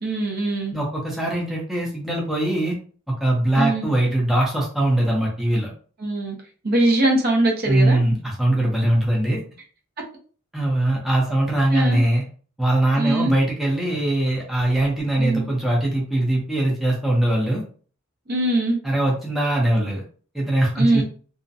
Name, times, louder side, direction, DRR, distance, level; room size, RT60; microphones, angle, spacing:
voice 1, 0.0-0.8 3.6-3.9 6.0-6.4 6.6-8.0 11.7-12.0 13.0-13.3 15.2-15.5 18.3-18.8 20.8-21.0, right 2 dB, 50° right, 0 dB, 0.6 m, -21 dB
voice 2, 0.7-2.7 3.1-5.7 7.7-9.4 10.5-12.2 12.6-17.6 18.8-20.0 20.3-21.0, right 1 dB, ahead, -3 dB, 0.5 m, -21 dB
2.4 x 2.0 x 2.6 m, 0.41 s
head